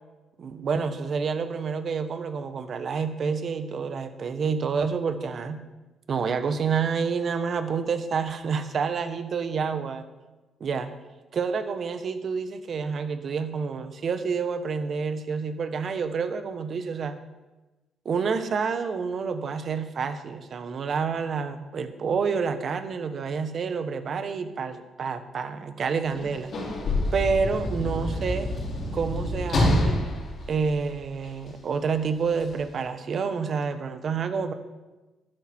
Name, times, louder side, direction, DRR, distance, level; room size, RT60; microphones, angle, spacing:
voice 1, 0.4-5.6 6.1-10.0 10.6-10.9 11.3-17.1 18.0-26.5 27.1-28.5 28.9-30.0 30.5-34.5, right 5 dB, 55° right, 9 dB, 1.1 m, -28 dB
Sliding door / Slam, 26.1-31.5 32.4-32.5, left 1 dB, 55° left, 3.1 m, -27 dB
12.0 x 9.9 x 4.4 m, 1.1 s
cardioid pair, 90°, 0 cm